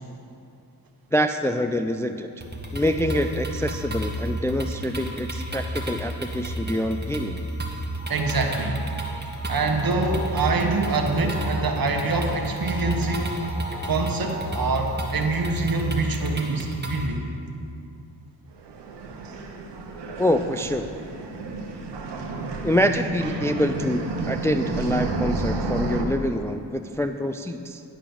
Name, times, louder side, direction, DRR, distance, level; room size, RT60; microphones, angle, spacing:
voice 1, 1.1-2.3 2.7-7.4 20.2-20.9 22.6-27.8, equal, 5° left, 7 dB, 0.3 m, -25 dB
sound 1, 2.4-17.1, equal, 25° right, 1.4 m, -31 dB
sound 2, 8.0-16.6, equal, 70° left, 2.3 m, -39 dB
voice 2, 8.1-8.8 9.5-13.4 13.7-17.3, right 3 dB, 55° right, 3 dB, 1.2 m, -25 dB
sound 3, 18.5-26.0, right 3 dB, 85° right, 1.0 m, -31 dB
10.5 x 5.0 x 7.0 m, 2.5 s
cardioid pair, 60°, 41 cm